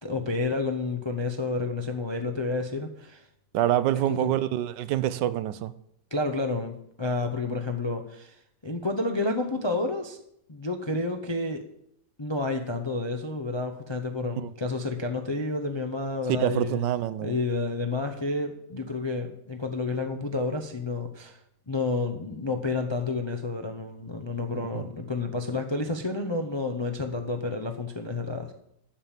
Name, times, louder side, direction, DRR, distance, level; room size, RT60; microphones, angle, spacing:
voice 1, 0.0-3.3 4.1-4.3 6.1-8.4 8.6-10.2 10.5-11.6 12.2-16.8 17.2-21.4 21.7-28.5, left 3 dB, 40° left, 0.4 m, -30 dB
voice 2, 3.5-5.7 14.4-14.5 16.4-17.4 24.7-24.8, right 12 dB, 85° right, 1.3 m, -26 dB
9.4 x 7.4 x 7.2 m
omnidirectional pair, 1.9 m